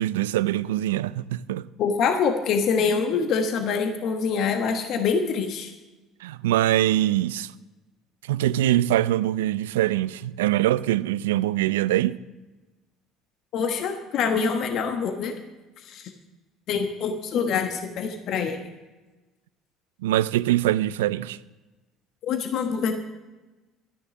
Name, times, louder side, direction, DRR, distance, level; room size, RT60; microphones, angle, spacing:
voice 1, 0.0-1.6 6.2-7.5 8.3-12.2 20.0-21.4, right 14 dB, 80° right, 0.3 m, -23 dB
voice 2, 1.8-5.7 13.5-15.4 15.8-16.1 16.7-18.6 22.2-23.0, left 5 dB, 60° left, 1.1 m, -25 dB
12.0 x 9.9 x 6.1 m
hypercardioid pair, 60°, 0 cm